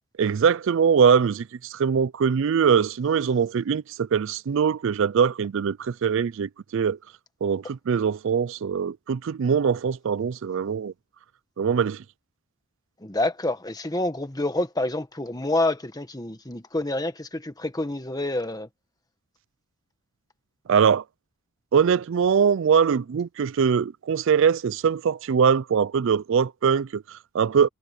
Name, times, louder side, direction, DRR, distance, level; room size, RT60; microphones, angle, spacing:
voice 1, 0.2-7.0 7.4-10.9 11.6-12.0 20.7-21.0 21.7-27.7, right 6 dB, 60° right, 0.4 m, -22 dB
voice 2, 13.0-18.7, left 2 dB, 15° left, 1.4 m, -27 dB
head